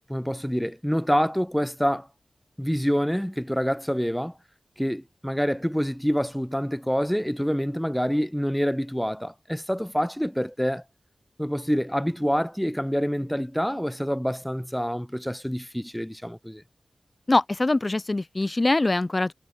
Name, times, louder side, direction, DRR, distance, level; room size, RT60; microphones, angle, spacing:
voice 1, 0.1-2.1 2.6-4.3 4.8-10.8 11.4-16.6, equal, ahead, 2.1 m, -26 dB
voice 2, 17.3-19.3, left 2 dB, 30° left, 1.2 m, -23 dB
wide cardioid pair, 85°, 0 cm